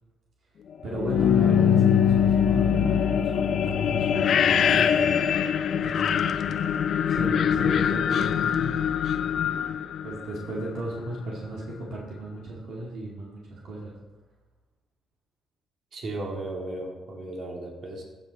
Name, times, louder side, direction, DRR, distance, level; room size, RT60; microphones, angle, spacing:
voice 1, 0.8-5.2 5.8-6.6 7.0-8.9 9.2-9.7 10.0-14.0, right 1 dB, 70° right, -4 dB, 2.1 m, -36 dB
sound 1, 0.9-10.8, left 8 dB, 60° left, 0.4 m, -23 dB
voice 2, 15.9-18.0, right 2 dB, 55° right, -1 dB, 2.5 m, -35 dB
14.0 x 6.0 x 4.1 m, 1.2 s
cardioid pair, 90°, 0 cm